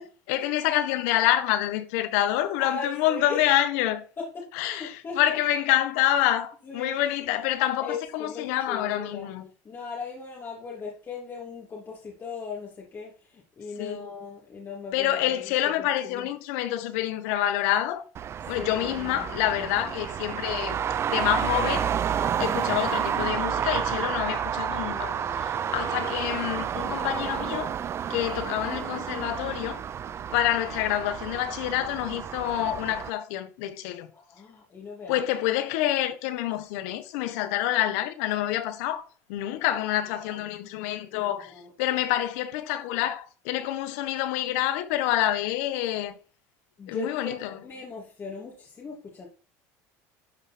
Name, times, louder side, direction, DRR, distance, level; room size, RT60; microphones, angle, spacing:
voice 1, 0.3-4.0 4.6-9.5 13.8-14.0 14.9-18.0 18.5-20.8 21.1-21.9 22.4-27.7 28.1-29.8 30.3-34.1 35.1-46.1 46.9-47.5, left 13 dB, 80° left, 1.4 m, -27 dB
voice 2, 2.6-3.5 4.2-5.4 6.6-7.0 7.8-9.3 9.6-16.3 18.5-19.3 24.8-25.4 34.1-35.3 40.2-40.3 41.0-41.7 46.8-49.3, left 4 dB, 30° left, 2.8 m, -38 dB
Traffic noise roadway noise, 18.1-33.1, right 8 dB, 35° right, 0.6 m, -30 dB
12.0 x 5.0 x 4.5 m
supercardioid pair, 120°, 8 cm